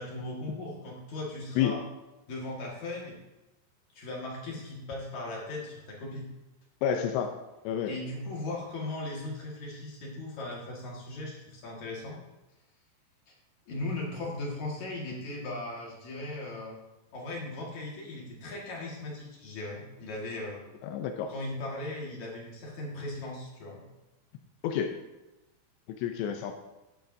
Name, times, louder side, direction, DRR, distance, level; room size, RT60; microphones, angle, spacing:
voice 1, 0.0-1.8 2.3-3.2 3.9-6.3 7.9-12.2 13.3-13.4 13.7-16.8 17.1-20.7 21.3-23.8, left 2 dB, 55° left, -3 dB, 2.5 m, -38 dB
voice 2, 6.8-7.3 7.6-7.9 20.8-21.3 24.6-24.9 26.0-26.6, left 9 dB, 85° left, 5 dB, 2.9 m, -29 dB
14.0 x 10.0 x 2.7 m, 1.0 s
omnidirectional pair, 5.1 m